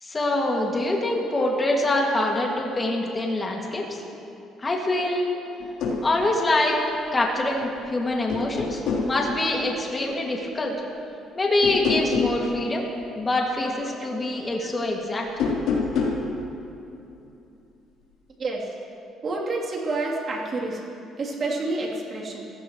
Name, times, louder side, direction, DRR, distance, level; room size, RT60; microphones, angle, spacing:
voice 1, 0.0-4.0 4.6-5.4 6.0-6.8 7.1-10.7 11.4-12.9 13.2-15.2, left 2 dB, 20° left, -1 dB, 2.2 m, -25 dB
sound 1, 5.6-6.0 7.6-7.9 8.3-9.1 11.6-12.4 15.3-16.2, left 4 dB, 85° left, 3.6 m, -26 dB
voice 2, 13.6-14.1 14.6-14.7 18.4-18.6 19.2-22.5, right 2 dB, 40° right, -3 dB, 3.1 m, -30 dB
27.5 x 15.5 x 3.1 m, 2.8 s
cardioid pair, 130°, 0 cm